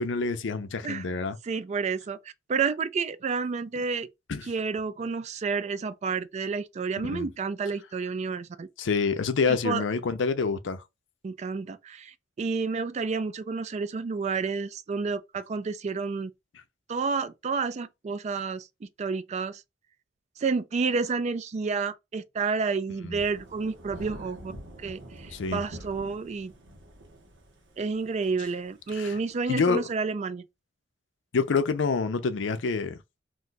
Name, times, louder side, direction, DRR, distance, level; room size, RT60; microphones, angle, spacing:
voice 1, 0.0-1.4 4.3-4.5 7.0-7.3 8.8-10.8 23.0-23.2 25.3-25.6 26.0-26.1 28.9-29.2 29.5-29.8 31.3-33.0, left 4 dB, 85° left, 0.5 m, -27 dB
voice 2, 1.4-2.2 2.5-4.1 4.5-8.7 9.5-9.8 11.2-16.3 16.9-19.6 20.4-24.5 24.8-26.5 27.8-30.5, right 4 dB, 40° right, 0.3 m, -30 dB
Thunder / Rain, 23.1-29.5, right 1 dB, 80° right, 0.8 m, -46 dB
2.6 x 2.3 x 3.9 m
head